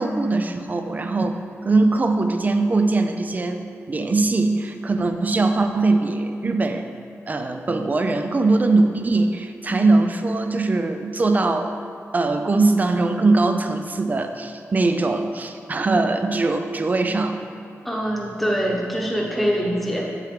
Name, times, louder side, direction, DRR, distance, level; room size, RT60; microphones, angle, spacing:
voice 1, 0.0-1.4 1.6-6.9 7.3-11.8 12.1-17.4, right 3 dB, 35° right, 7 dB, 0.5 m, -21 dB
voice 2, 17.8-20.1, equal, ahead, -2 dB, 1.1 m, -24 dB
8.1 x 7.0 x 3.3 m, 2.6 s
wide cardioid pair, 140°, 5 cm